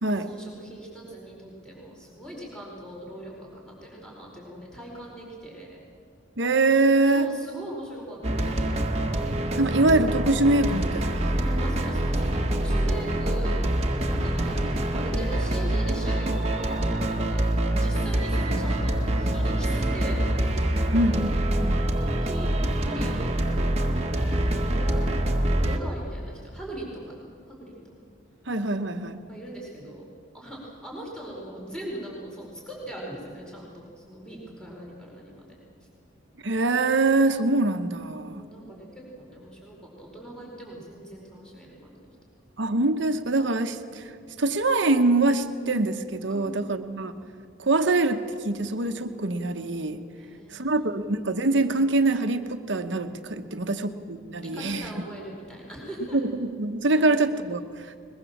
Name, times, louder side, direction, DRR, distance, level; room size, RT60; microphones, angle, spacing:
voice 1, 0.1-5.8 7.1-8.6 11.3-13.7 14.0-14.5 14.9-20.2 20.6-21.1 22.0-23.9 24.2-25.2 25.6-28.0 29.3-30.1 30.3-35.5 38.2-42.0 46.3-46.8 50.1-50.9 53.5-53.9 54.4-56.2 57.0-57.1, right 1 dB, 5° left, -3 dB, 4.7 m, -40 dB
voice 2, 6.4-7.3 9.6-11.4 20.9-21.3 21.6-21.8 28.5-29.2 36.4-38.4 42.6-44.1 44.4-47.1 47.6-50.0 50.5-54.9 56.1-57.9, right 2 dB, 65° right, 7 dB, 1.1 m, -24 dB
sound 1, 8.2-25.8, right 1 dB, 30° right, 1.6 m, -25 dB
22.0 x 21.5 x 7.3 m, 2.1 s
head